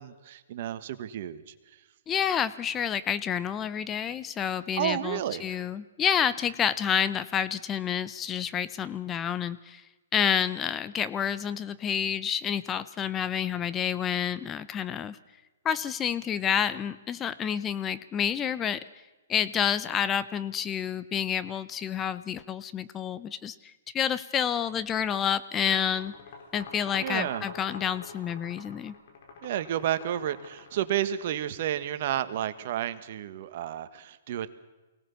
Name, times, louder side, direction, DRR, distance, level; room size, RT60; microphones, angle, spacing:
voice 1, 0.0-1.5 4.8-5.6 27.0-27.4 29.4-34.5, right 11 dB, 55° right, 12 dB, 1.4 m, -31 dB
voice 2, 2.1-9.8 10.1-15.2 15.6-18.8 19.3-23.5 23.9-26.1 26.5-28.9, left 8 dB, 20° left, 15 dB, 0.7 m, -29 dB
sound 1, 25.6-31.3, left 4 dB, 55° left, 5.2 m, -45 dB
24.0 x 18.0 x 7.1 m, 1.1 s
hypercardioid pair, 135°, 0 cm